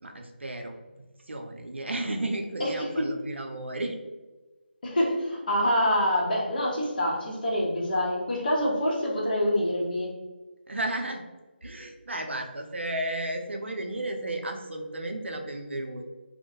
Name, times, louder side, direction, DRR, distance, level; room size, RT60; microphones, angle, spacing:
voice 1, 0.0-4.0 10.7-11.2 11.6-16.1, right 1 dB, 85° right, 4 dB, 0.4 m, -33 dB
voice 2, 2.6-3.0 4.8-10.1, equal, 50° left, -4 dB, 0.8 m, -26 dB
2.2 x 2.1 x 2.8 m, 1.2 s
figure-of-eight pair, 160°, 6 cm